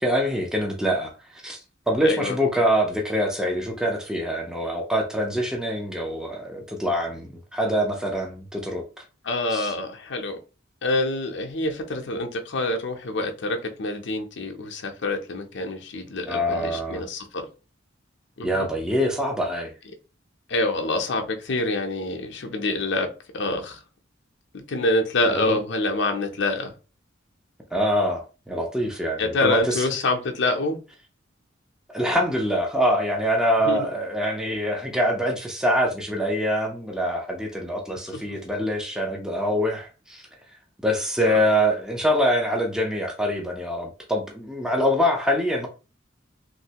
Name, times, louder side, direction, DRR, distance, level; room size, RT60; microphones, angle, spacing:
voice 1, 0.0-1.1 1.4-1.6 1.9-8.8 9.5-9.7 16.3-17.0 18.4-19.7 25.4-25.6 27.7-29.8 31.9-40.2 40.8-45.7, equal, 5° right, 0.5 m, -24 dB
voice 2, 2.0-2.4 9.2-10.4 10.8-17.5 18.4-18.7 20.5-23.1 23.3-23.8 24.7-26.7 29.2-30.8 33.6-33.9 41.2-41.5, left 2 dB, 65° left, 0.6 m, -26 dB
3.1 x 2.6 x 2.8 m
head